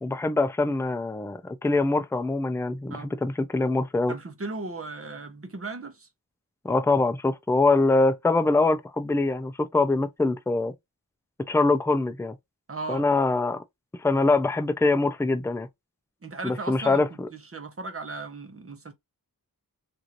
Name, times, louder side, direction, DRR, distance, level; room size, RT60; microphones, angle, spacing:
voice 1, 0.0-4.1 6.6-10.7 11.5-12.4 12.9-13.6 14.0-15.7 16.4-17.3, left 3 dB, 10° left, 0.4 m, -24 dB
voice 2, 4.1-6.1 12.7-13.1 16.2-17.0 17.3-18.9, right 3 dB, 40° right, 0.9 m, -36 dB
3.0 x 2.5 x 2.5 m
wide cardioid pair, 80°, 36 cm